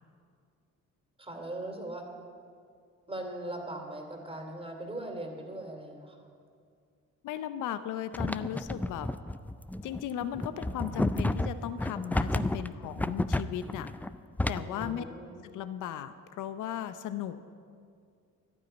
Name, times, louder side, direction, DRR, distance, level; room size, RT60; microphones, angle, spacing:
voice 1, 1.2-2.0 3.1-6.3 14.6-15.4, right 1 dB, 20° right, 2 dB, 2.7 m, -40 dB
voice 2, 7.2-9.1 9.8-13.9 14.5-15.0 15.4-17.4, left 10 dB, 85° left, 11 dB, 0.7 m, -36 dB
sound 1, 8.1-14.9, left 1 dB, 5° left, 0.4 m, -31 dB
12.0 x 10.0 x 8.9 m, 2.3 s
cardioid pair, 90°, 30 cm